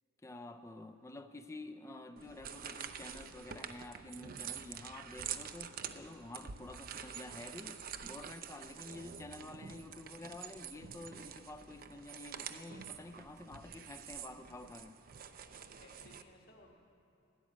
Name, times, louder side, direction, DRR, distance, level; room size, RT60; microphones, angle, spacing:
voice 1, 0.2-15.0, left 2 dB, 15° left, 7 dB, 0.4 m, -49 dB
sound 1, 2.2-16.2, right 8 dB, 50° right, 0.5 m, -47 dB
voice 2, 15.6-16.8, left 1 dB, 50° left, 1 dB, 1.7 m, -60 dB
13.0 x 10.0 x 7.9 m, 2.9 s
head